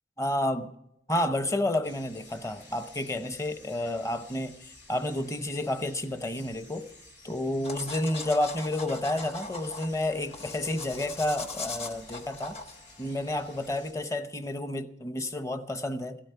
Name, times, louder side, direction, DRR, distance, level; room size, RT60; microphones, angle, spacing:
voice 1, 0.2-0.7 1.1-6.9 7.2-12.6 13.0-16.2, left 1 dB, 15° left, 0.8 m, -30 dB
sound 1, 1.8-13.9, left 2 dB, 90° left, 5.3 m, -53 dB
sound 2, 7.6-13.8, left 3 dB, 35° left, 1.2 m, -41 dB
16.0 x 13.0 x 5.7 m
head